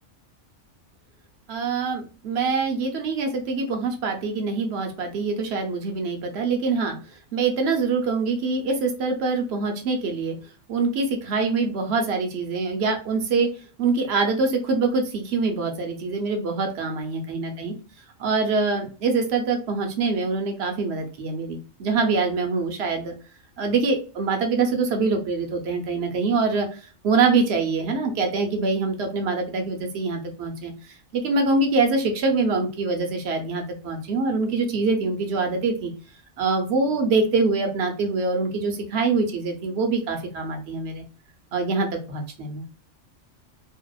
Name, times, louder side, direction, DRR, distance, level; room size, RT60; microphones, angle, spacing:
voice 1, 1.5-7.0 7.3-10.4 10.7-13.5 13.8-17.7 18.2-23.1 23.6-35.9 36.4-41.0 41.5-42.6, right 4 dB, 65° right, 4 dB, 0.8 m, -24 dB
2.6 x 2.1 x 2.2 m, 0.37 s
omnidirectional pair, 1.3 m